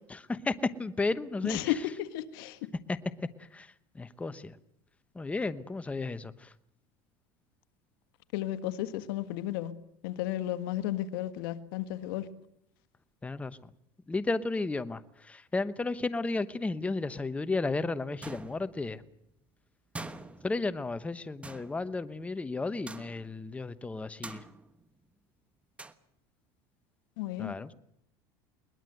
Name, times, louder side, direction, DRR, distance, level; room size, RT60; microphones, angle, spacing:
voice 1, 0.3-1.6 2.9-3.0 3.5-3.7 3.9-4.5 5.1-6.5 13.2-13.6 14.1-15.0 15.3-19.0 20.4-24.4 27.4-27.7, left 3 dB, 10° left, 1.0 m, -33 dB
voice 2, 1.4-2.6 8.3-9.7 10.0-12.3 27.2-27.5, left 13 dB, 80° left, 1.5 m, -33 dB
sound 1, 18.2-19.1 19.9-21.0 21.4-22.3 22.9-23.4 24.2-25.0 25.8-25.9, right 2 dB, 10° right, 1.2 m, -45 dB
21.5 x 20.5 x 7.9 m
supercardioid pair, 120°, 12 cm